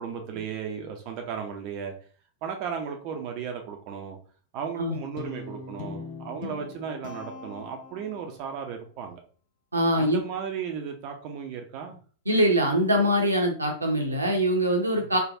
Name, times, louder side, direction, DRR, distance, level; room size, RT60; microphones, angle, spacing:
voice 1, 0.0-1.9 2.4-4.2 4.5-9.2 10.0-12.0 15.0-15.1, right 7 dB, 45° right, 3 dB, 0.5 m, -35 dB
Guitar, 5.2-8.4, left 4 dB, 50° left, 0.6 m, -40 dB
voice 2, 9.7-10.2 12.3-15.2, equal, 80° right, 2 dB, 0.7 m, -23 dB
3.4 x 2.2 x 2.6 m, 0.41 s
figure-of-eight pair, 90°, 0 cm